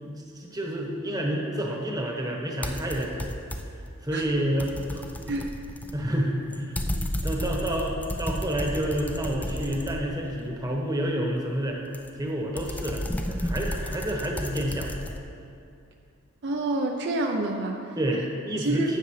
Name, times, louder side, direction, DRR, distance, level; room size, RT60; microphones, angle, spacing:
voice 1, 0.0-3.4 4.0-5.0 5.9-11.8 12.2-14.9 18.0-19.0, right 1 dB, 15° right, -1 dB, 1.1 m, -29 dB
sound 1, 2.6-3.9 4.3-10.4 11.9-15.2, left 1 dB, 5° left, 0.4 m, -33 dB
voice 2, 16.4-17.8 18.6-18.9, right 2 dB, 55° right, 2 dB, 0.6 m, -27 dB
12.5 x 8.2 x 3.3 m, 2.5 s
head